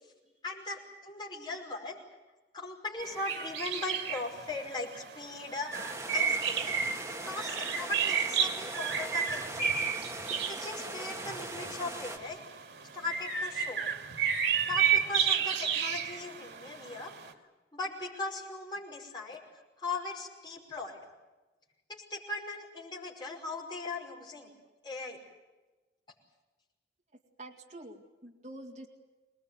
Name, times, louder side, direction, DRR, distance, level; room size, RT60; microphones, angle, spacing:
voice 1, 0.4-2.0 2.5-5.7 6.1-6.7 7.2-9.7 10.5-12.4 12.9-13.9 14.7-17.1 17.7-19.4 19.8-21.0 21.9-24.5 24.8-25.2, left 3 dB, 25° left, -3 dB, 5.4 m, -39 dB
sound 1, 3.0-17.3, right 7 dB, 85° right, 2.4 m, -32 dB
sound 2, 5.7-12.2, right 2 dB, 15° right, 1.9 m, -40 dB
voice 2, 27.4-28.9, right 1 dB, 45° right, 1 dB, 2.3 m, -47 dB
25.0 x 20.0 x 9.5 m, 1.1 s
head